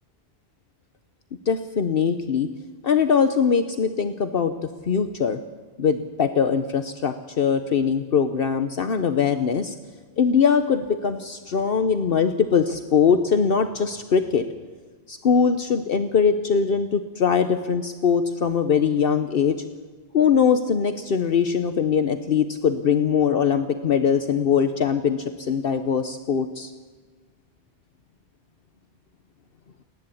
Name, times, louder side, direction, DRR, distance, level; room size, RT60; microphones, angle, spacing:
voice 1, 1.5-2.5 2.8-5.4 5.8-9.7 10.2-14.4 15.1-19.6 20.1-26.7, left 6 dB, 60° left, 8 dB, 1.0 m, -21 dB
29.0 x 10.5 x 8.5 m, 1.4 s
omnidirectional pair, 1.1 m